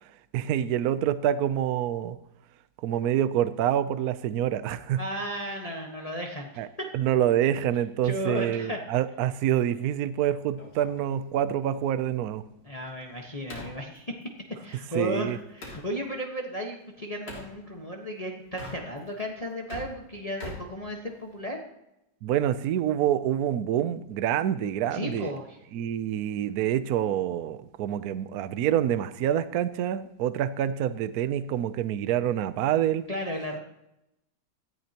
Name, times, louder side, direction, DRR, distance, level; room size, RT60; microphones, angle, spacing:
voice 1, 0.3-2.2 2.8-5.0 6.6-6.7 6.9-12.4 14.9-15.4 22.2-25.3 25.7-33.0, right 10 dB, 65° right, 12 dB, 1.1 m, -26 dB
voice 2, 5.0-6.9 8.0-8.8 12.6-14.1 14.6-21.6 24.9-25.6 33.1-33.6, equal, 20° left, 0 dB, 1.3 m, -34 dB
sound 1, 10.6-15.9 17.3-17.5 18.4-19.2 19.5-21.5, left 2 dB, 70° left, 3.5 m, -45 dB
17.5 x 14.0 x 2.9 m, 0.86 s
omnidirectional pair, 1.9 m